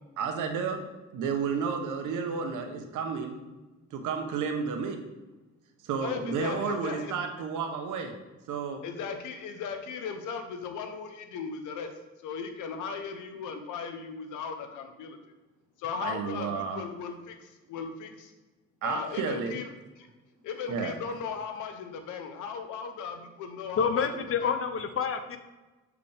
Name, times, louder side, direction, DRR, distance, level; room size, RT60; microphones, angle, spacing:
voice 1, 0.2-0.8 1.1-3.4 3.9-5.0 5.8-8.1 8.5-8.8 16.0-16.8 18.8-19.6 20.7-20.9, right 5 dB, 85° right, 5 dB, 1.0 m, -31 dB
voice 2, 6.0-7.2 8.8-11.9 12.2-15.2 15.8-18.3 18.8-19.7 20.4-24.1 24.4-24.5, left 6 dB, 85° left, 7 dB, 0.8 m, -37 dB
voice 3, 23.8-25.4, left 6 dB, 45° left, 9 dB, 0.7 m, -28 dB
6.8 x 4.9 x 3.4 m, 1.1 s
cardioid pair, 90°, 30 cm